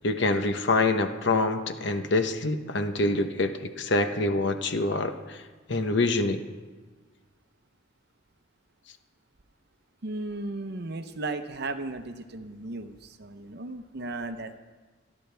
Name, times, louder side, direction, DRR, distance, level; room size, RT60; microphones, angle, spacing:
voice 1, 0.0-5.4 5.7-6.4, left 2 dB, 60° left, 7 dB, 0.9 m, -26 dB
voice 2, 10.0-14.6, right 2 dB, 55° right, 8 dB, 0.8 m, -35 dB
27.0 x 11.0 x 3.4 m, 1.4 s
head